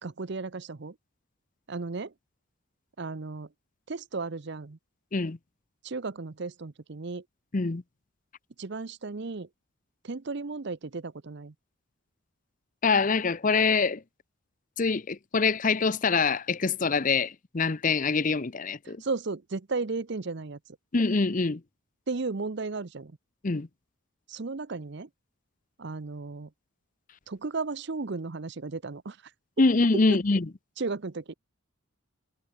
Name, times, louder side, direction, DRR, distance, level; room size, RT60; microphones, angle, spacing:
voice 1, 0.0-0.9 1.7-2.1 3.0-3.5 3.9-4.8 5.8-7.2 8.6-9.5 10.0-11.5 18.8-20.6 22.1-23.1 24.3-25.1 25.8-26.5 27.3-29.2 29.9-30.2 30.8-31.3, right 3 dB, 55° right, 0.7 m, -34 dB
voice 2, 12.8-14.0 14.8-19.0 20.9-21.6 23.4-23.7 29.6-30.5, left 4 dB, 40° left, 0.7 m, -25 dB
head